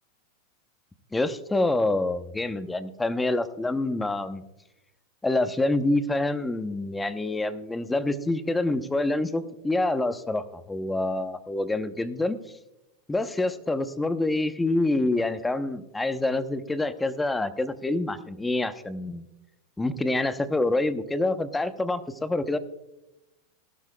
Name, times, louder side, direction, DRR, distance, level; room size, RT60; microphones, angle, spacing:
voice 1, 1.1-4.4 5.2-12.4 13.1-19.3 19.8-22.6, left 2 dB, 10° left, 11 dB, 0.8 m, -26 dB
18.0 x 12.0 x 2.2 m, 0.94 s
hypercardioid pair, 120°, 0 cm